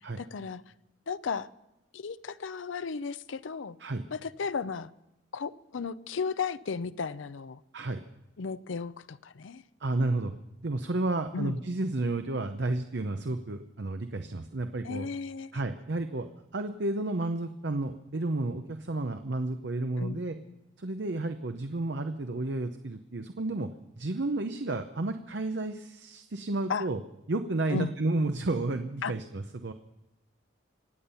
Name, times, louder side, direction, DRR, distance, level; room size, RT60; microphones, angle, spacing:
voice 1, 0.2-0.6 1.1-1.5 1.9-3.8 4.1-4.9 5.3-7.6 8.4-9.6 11.3-11.6 14.8-15.6 20.0-20.6 26.7-26.9 27.7-27.9 29.0-29.1, left 5 dB, 85° left, 15 dB, 0.5 m, -34 dB
voice 2, 9.8-10.3 10.6-15.1 15.5-16.3 16.5-20.4 20.8-23.7 24.0-27.0 27.3-29.7, right 2 dB, 65° right, 7 dB, 0.7 m, -31 dB
26.0 x 8.7 x 5.6 m, 0.93 s
head